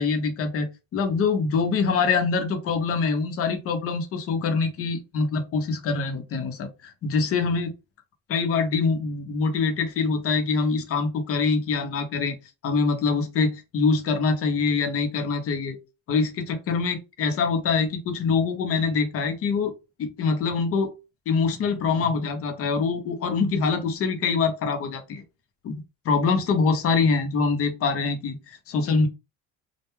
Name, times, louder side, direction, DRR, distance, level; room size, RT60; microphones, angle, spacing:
voice 1, 0.0-7.7 8.3-12.4 12.6-15.8 16.1-19.7 20.0-20.9 21.3-25.2 25.6-29.1, left 4 dB, 45° left, 6 dB, 0.7 m, -24 dB
2.2 x 2.2 x 3.1 m, 0.27 s
cardioid pair, 135°, 32 cm